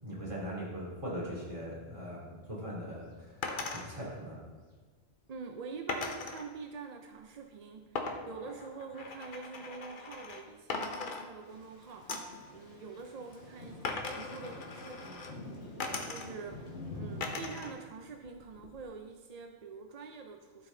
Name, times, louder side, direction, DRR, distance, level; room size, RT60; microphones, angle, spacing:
voice 1, 0.0-4.4, equal, 25° right, -6 dB, 2.8 m, -40 dB
sound 1, 3.4-3.9 5.9-6.5 8.0-10.4 10.7-11.7 12.1-12.4 13.8-15.3 15.8-16.5 17.2-17.7 18.1-18.9, left 3 dB, 50° left, 0.9 m, -39 dB
voice 2, 5.3-15.3 16.0-20.7, right 5 dB, 55° right, 4 dB, 0.4 m, -46 dB
Thunder / Rain, 11.4-17.7, left 2 dB, 65° left, 1.8 m, -47 dB
13.0 x 4.9 x 3.8 m, 1.4 s
omnidirectional pair, 1.2 m